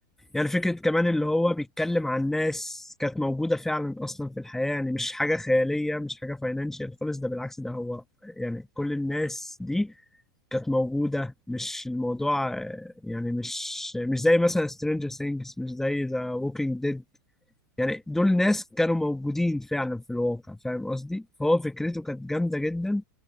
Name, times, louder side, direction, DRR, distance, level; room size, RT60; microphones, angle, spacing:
voice 1, 0.3-9.9 10.5-17.0 17.8-23.0, left 1 dB, 5° left, 1.1 m, -27 dB
supercardioid pair, 145°, 11 cm